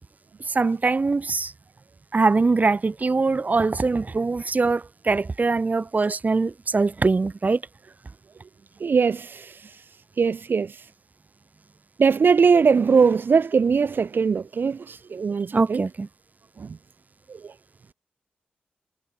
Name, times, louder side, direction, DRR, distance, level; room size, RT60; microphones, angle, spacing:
voice 1, 0.5-1.5 2.1-7.6 15.5-16.1, right 3 dB, 45° right, 1.6 m, -22 dB
voice 2, 8.8-9.6 10.2-10.8 12.0-15.8 16.6-16.7, right 5 dB, 65° right, 1.1 m, -20 dB
cardioid pair, 45°, 4 cm